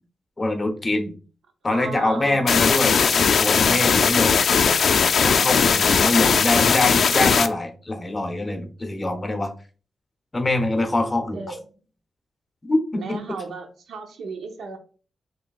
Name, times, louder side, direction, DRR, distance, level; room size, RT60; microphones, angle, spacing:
voice 1, 0.4-1.1 1.6-4.4 5.2-9.5 10.3-11.5 12.6-13.2, left 2 dB, 25° left, 5 dB, 0.8 m, -24 dB
voice 2, 1.7-2.9 6.0-6.5 11.3-11.8 12.9-14.8, right 4 dB, 80° right, 5 dB, 0.7 m, -36 dB
sound 1, 2.5-7.5, left 6 dB, 65° left, 0.4 m, -18 dB
4.9 x 3.3 x 2.3 m, 0.38 s
cardioid pair, 85°, 0 cm